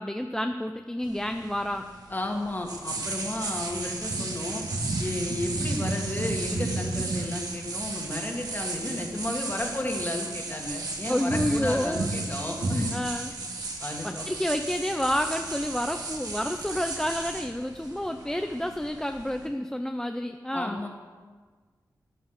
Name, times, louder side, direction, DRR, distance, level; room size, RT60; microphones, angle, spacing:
voice 1, 0.0-1.9 11.1-12.1 12.9-13.3 14.0-20.8, left 1 dB, 10° left, 6 dB, 0.6 m, -29 dB
sound 1, 1.0-19.5, right 2 dB, 60° right, 2.2 m, -33 dB
voice 2, 2.1-4.6 5.0-13.0 13.8-14.3 20.5-20.9, left 1 dB, 25° left, 1 dB, 2.1 m, -33 dB
12.5 x 11.0 x 6.6 m, 1.5 s
wide cardioid pair, 115°, 7 cm